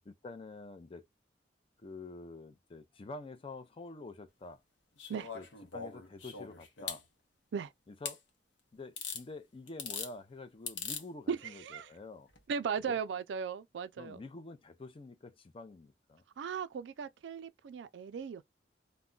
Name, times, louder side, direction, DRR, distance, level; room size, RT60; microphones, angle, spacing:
voice 1, 0.1-1.1 1.8-4.6 5.3-5.5 5.7-7.0 7.9-8.2 8.7-12.3 12.9-13.0 14.0-16.2, left 3 dB, 30° left, 0.4 m, -47 dB
sound 1, 5.0-7.0 8.1-8.2 9.0-9.2 9.7-10.1 10.7-11.0 12.3-12.4, left 5 dB, 80° left, 0.7 m, -41 dB
voice 2, 11.3-11.9 12.5-14.2 16.4-18.4, right 6 dB, 80° right, 0.3 m, -37 dB
2.2 x 2.1 x 3.7 m
head